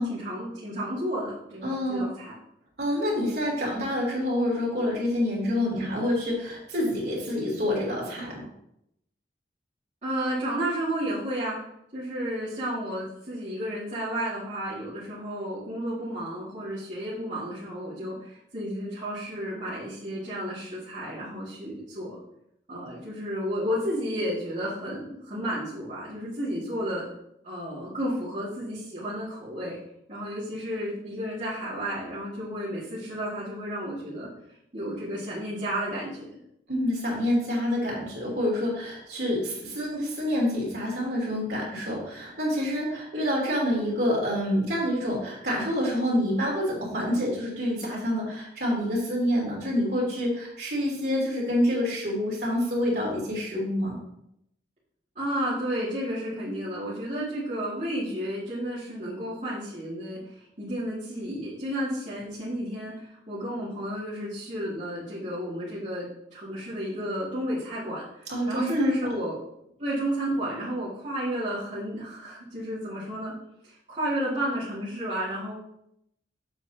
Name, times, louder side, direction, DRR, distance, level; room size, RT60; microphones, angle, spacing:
voice 1, 0.0-2.3 10.0-11.6 11.9-22.2 22.7-27.0 27.4-29.8 30.1-34.3 34.7-36.3 55.1-69.3 69.8-73.3 73.6-75.5, equal, 40° right, -11 dB, 2.4 m, -32 dB
voice 2, 1.6-2.1 2.8-8.5 36.7-54.0 68.3-68.9, left 1 dB, 55° right, -4 dB, 3.2 m, -27 dB
8.0 x 7.5 x 2.9 m, 0.77 s
head